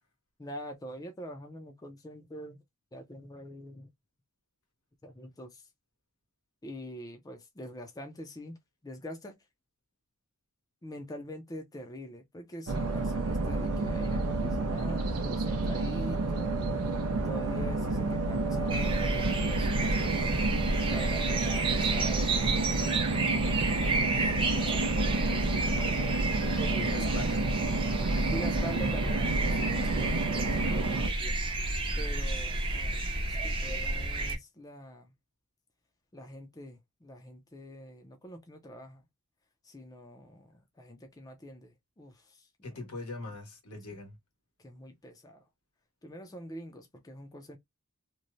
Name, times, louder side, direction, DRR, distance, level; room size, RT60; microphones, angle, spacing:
voice 1, 0.4-2.6 2.9-3.9 5.0-5.6 6.6-8.6 8.8-9.4 10.8-16.6 17.2-19.2 19.5-20.4 20.9-25.0 26.4-27.1 28.3-31.4 32.0-35.1 36.1-39.0 39.6-40.5 40.8-42.5 44.6-45.4 46.0-47.6, equal, 15° left, 0.5 m, -45 dB
sound 1, 12.7-31.1, right 2 dB, 80° right, 0.6 m, -30 dB
sound 2, 18.7-34.4, right 2 dB, 25° right, 0.6 m, -31 dB
voice 2, 26.8-27.5 28.1-28.5 42.6-44.2, left 2 dB, 85° left, 1.4 m, -41 dB
3.0 x 2.1 x 2.5 m
head